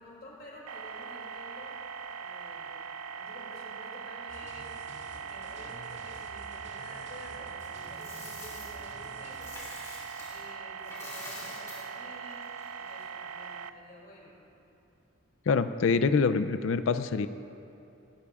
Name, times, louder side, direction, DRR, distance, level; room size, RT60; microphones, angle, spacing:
voice 1, 0.0-1.8 2.2-9.6 10.3-14.4, left 1 dB, 45° left, -4 dB, 2.7 m, -51 dB
sound 1, 0.7-13.7, right 6 dB, 90° right, 0.4 m, -41 dB
sound 2, 4.3-11.1 11.4-11.6, right 1 dB, 60° right, 1.9 m, -52 dB
Coin (dropping), 7.6-10.5 10.8-13.1, left 2 dB, 15° left, 3.3 m, -47 dB
voice 2, 15.5-17.3, left 4 dB, 65° left, 12 dB, 0.4 m, -25 dB
18.5 x 18.5 x 2.4 m, 2.8 s
head